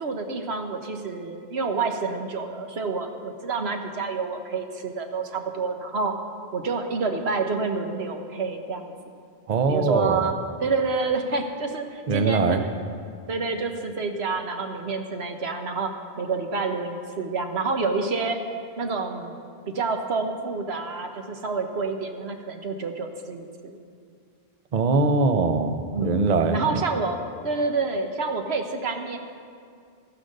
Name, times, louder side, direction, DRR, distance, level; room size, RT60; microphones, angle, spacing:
voice 1, 0.0-6.1 6.5-8.9 9.7-12.8 13.3-18.4 18.8-19.3 19.7-23.5 24.7-24.9 25.9-26.3 26.5-29.2, right 4 dB, 80° right, 5 dB, 1.4 m, -28 dB
voice 2, 9.5-10.3 12.1-12.6 24.7-26.8, right 4 dB, 45° right, 8 dB, 0.8 m, -22 dB
13.0 x 10.0 x 6.6 m, 2.3 s
omnidirectional pair, 1.1 m